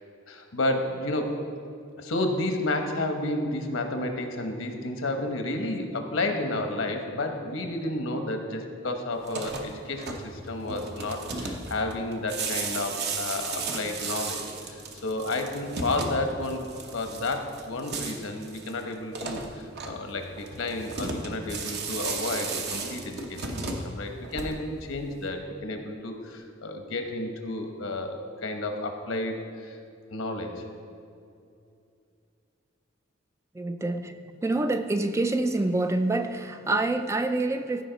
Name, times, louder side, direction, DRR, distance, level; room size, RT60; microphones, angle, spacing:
voice 1, 0.3-1.3 2.0-23.6 23.8-29.8 30.1-30.7, left 2 dB, 75° left, 5 dB, 1.0 m, -31 dB
sound 1, 9.2-24.9, right 4 dB, 55° right, 0.9 m, -35 dB
voice 2, 33.5-37.8, right 2 dB, 15° right, 8 dB, 0.3 m, -27 dB
14.5 x 5.1 x 3.9 m, 2.5 s
head